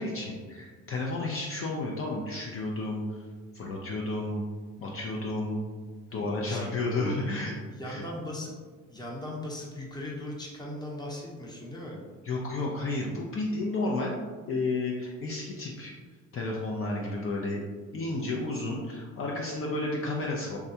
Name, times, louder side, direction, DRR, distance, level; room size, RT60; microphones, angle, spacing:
voice 1, 0.0-3.2 3.5-4.4 4.8-5.6 6.1-7.5 7.8-8.0 12.2-14.2 14.5-15.9 16.3-17.6 17.9-20.6, left 2 dB, 45° left, -2 dB, 0.5 m, -32 dB
voice 2, 6.5-7.2 7.7-8.5 8.9-12.0, left 1 dB, 15° left, -3 dB, 0.8 m, -38 dB
3.5 x 2.2 x 2.7 m, 1.5 s
cardioid pair, 90°, 30 cm